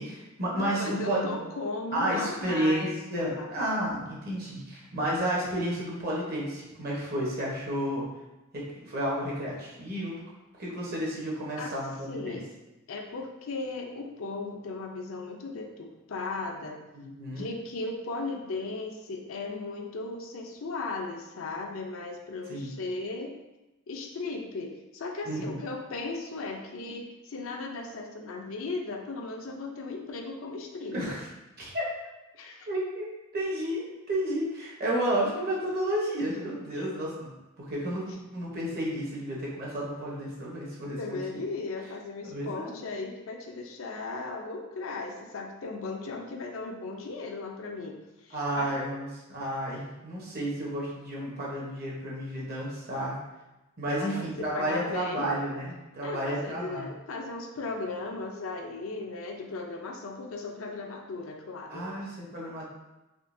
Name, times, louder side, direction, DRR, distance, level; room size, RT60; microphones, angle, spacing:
voice 1, 0.0-1.4 1.9-8.0 8.5-10.1 10.6-12.4 16.9-17.5 22.5-22.7 25.2-25.6 30.9-31.3 31.6-31.8 32.7-33.1 33.3-41.4 42.2-42.7 44.1-44.2 48.3-53.2 53.8-56.9 61.7-62.7, right 1 dB, 50° right, -4 dB, 0.9 m, -31 dB
voice 2, 0.5-3.5 11.6-11.7 12.1-12.5 12.9-16.8 17.3-23.3 23.9-31.2 32.3-32.7 36.7-37.0 41.0-48.7 54.0-55.3 56.0-61.9, left 3 dB, 80° left, 3 dB, 0.5 m, -37 dB
3.7 x 2.7 x 2.6 m, 1.0 s
head